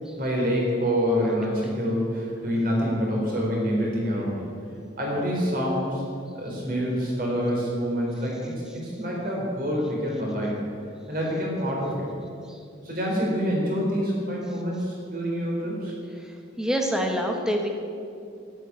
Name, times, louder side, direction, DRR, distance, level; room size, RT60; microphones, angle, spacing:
voice 1, 0.2-4.5 5.0-6.0 6.3-8.5 8.8-10.6 11.1-12.1 12.8-15.9, equal, 45° right, -3 dB, 4.1 m, -26 dB
voice 2, 16.6-17.7, equal, 5° right, 2 dB, 1.3 m, -26 dB
11.0 x 9.2 x 9.7 m, 2.5 s
head